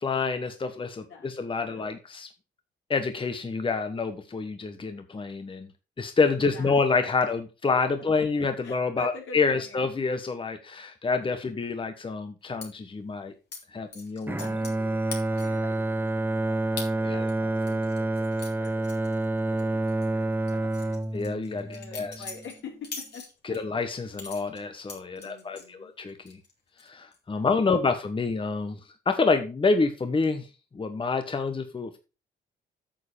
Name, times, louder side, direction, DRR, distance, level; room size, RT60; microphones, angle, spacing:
voice 1, 0.0-2.3 2.9-5.7 6.0-13.3 13.7-14.4 17.0-17.3 21.1-22.1 23.4-26.4 26.8-28.8 29.1-32.0, left 4 dB, 25° left, 8 dB, 1.1 m, -28 dB
voice 2, 1.6-2.0 6.5-6.8 7.2-7.3 8.6-9.8 14.3-21.2 21.6-23.6 24.0-24.1 25.1-25.9 27.3-27.7, left 5 dB, 75° left, 1 dB, 4.2 m, -47 dB
sound 1, 12.6-12.7 13.5-13.6 13.9-14.8 15.1-15.6 16.1-16.2 16.8-16.9 17.3-19.6 19.9-20.1 20.5-23.6 24.1-25.7 26.1-26.5 26.8-27.2, left 4 dB, 55° left, 3.6 m, -41 dB
Bowed string instrument, 14.3-22.5, right 2 dB, 10° right, 0.7 m, -28 dB
9.2 x 6.7 x 5.0 m, 0.30 s
cardioid pair, 90°, 20 cm